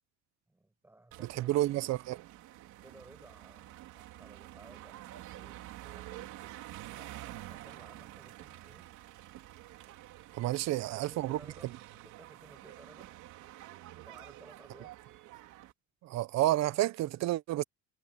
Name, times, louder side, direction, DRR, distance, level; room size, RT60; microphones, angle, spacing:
voice 1, 0.5-1.9 2.8-6.6 7.0-8.9 10.4-13.1 13.9-15.0, right 2 dB, 10° right, 6.8 m, -58 dB
sound 1, 1.1-15.7, right 15 dB, 75° right, 3.1 m, -49 dB
voice 2, 1.2-2.2 10.3-11.4 16.0-17.6, right 15 dB, 60° right, 0.7 m, -30 dB
cardioid pair, 155°, 30 cm